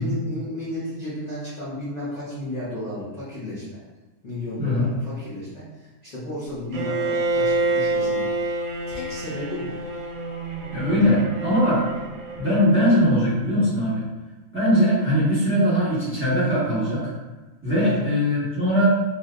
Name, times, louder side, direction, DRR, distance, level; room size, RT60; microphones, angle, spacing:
voice 1, 0.0-3.8 4.2-8.5 8.9-9.8 17.8-18.1, left 1 dB, 30° left, -13 dB, 1.1 m, -33 dB
voice 2, 4.6-4.9 10.7-11.8 12.4-14.1 14.5-17.1 17.6-18.8, equal, 10° right, -12 dB, 1.3 m, -20 dB
Bowed string instrument, 6.7-12.7, right 2 dB, 70° right, 1.0 m, -27 dB
3.1 x 3.0 x 2.5 m, 1.2 s
omnidirectional pair, 1.7 m